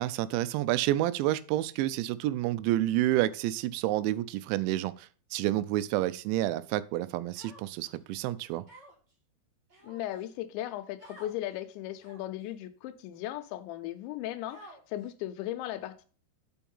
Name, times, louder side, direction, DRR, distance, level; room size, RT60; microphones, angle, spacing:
voice 1, 0.0-8.6, right 14 dB, 85° right, 2.8 m, -29 dB
Human voice, 7.3-8.0 8.7-9.1 9.7-10.3 11.0-11.4 12.0-12.4 13.1-13.2 14.5-15.1, equal, 40° right, 1.6 m, -52 dB
voice 2, 9.8-16.1, left 13 dB, 85° left, 3.0 m, -37 dB
7.0 x 5.4 x 5.4 m
omnidirectional pair, 5.2 m